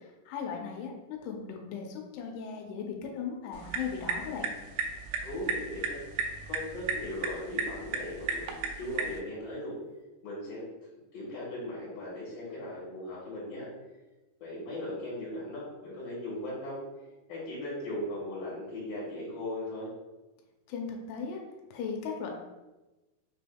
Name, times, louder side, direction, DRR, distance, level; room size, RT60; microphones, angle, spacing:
voice 1, 0.0-4.5 20.7-21.4 21.7-22.3, left 6 dB, 85° left, 2 dB, 2.8 m, -37 dB
sound 1, 3.5-9.2, right 5 dB, 85° right, 2.6 m, -35 dB
voice 2, 5.2-6.0 6.5-9.7 10.2-10.6 11.1-13.7 14.4-16.8 17.3-19.9, left 1 dB, 65° left, -7 dB, 2.7 m, -38 dB
6.3 x 3.4 x 2.3 m, 1.1 s
omnidirectional pair, 4.7 m